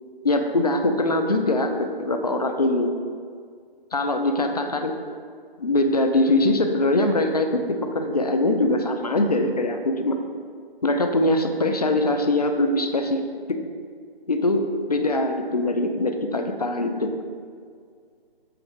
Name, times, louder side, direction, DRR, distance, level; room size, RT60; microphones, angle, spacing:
voice 1, 0.2-2.9 3.9-5.0 5.6-10.2 10.8-13.2 13.5-13.6 14.3-17.1, left 2 dB, 40° left, 5 dB, 0.6 m, -22 dB
7.9 x 4.7 x 4.7 m, 2.1 s
figure-of-eight pair, 170°, 30 cm